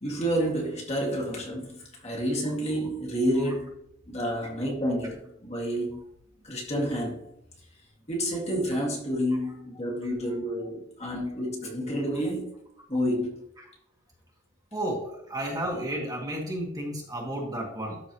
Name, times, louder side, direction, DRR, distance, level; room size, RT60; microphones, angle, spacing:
voice 1, 0.0-3.8 4.1-6.1 6.4-7.2 8.1-12.5 12.9-13.4, equal, 35° left, 2.2 m, -29 dB
voice 2, 14.7-18.0, right 1 dB, 20° right, 1.6 m, -32 dB
12.5 x 4.6 x 3.0 m
head